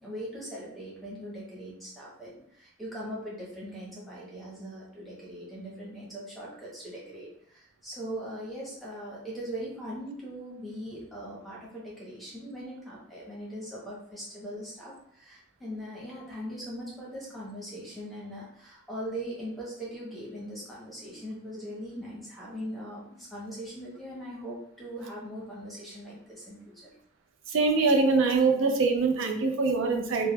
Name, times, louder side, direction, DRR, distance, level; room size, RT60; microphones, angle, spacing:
voice 1, 0.0-26.9, equal, ahead, -6 dB, 0.7 m, -40 dB
voice 2, 27.5-30.3, right 4 dB, 85° right, 4 dB, 0.4 m, -24 dB
3.3 x 2.1 x 2.2 m, 0.69 s
head